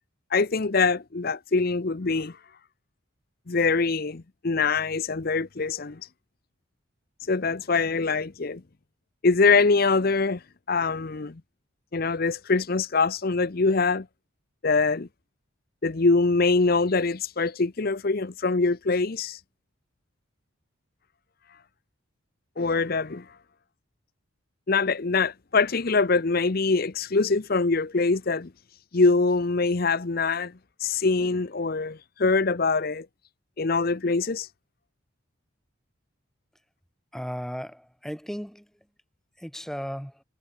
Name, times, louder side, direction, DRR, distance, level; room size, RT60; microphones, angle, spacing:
voice 1, 0.3-2.3 3.5-6.0 7.3-8.6 9.2-10.4 10.7-11.3 11.9-14.0 14.6-15.1 15.8-19.4 22.6-23.2 24.7-28.5 28.9-30.5 30.8-33.1 33.6-34.5, left 4 dB, 45° left, 0.7 m, -23 dB
voice 2, 37.1-38.6 39.4-40.2, equal, ahead, 1.7 m, -35 dB
head